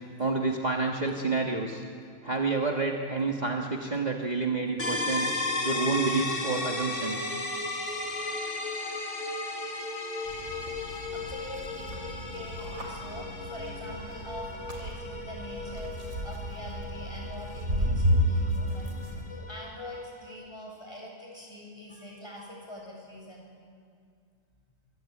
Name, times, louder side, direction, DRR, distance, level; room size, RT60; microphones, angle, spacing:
voice 1, 0.2-1.8 2.2-5.3 5.6-7.3, right 3 dB, 30° right, 0 dB, 1.8 m, -29 dB
sound 1, 4.8-20.4, left 2 dB, 65° left, 2.8 m, -35 dB
sound 2, 10.2-19.2, equal, 90° right, 4.7 m, -32 dB
voice 2, 10.8-23.5, left 1 dB, 20° left, -2 dB, 7.5 m, -44 dB
26.0 x 23.5 x 8.7 m, 2.2 s
omnidirectional pair, 1.4 m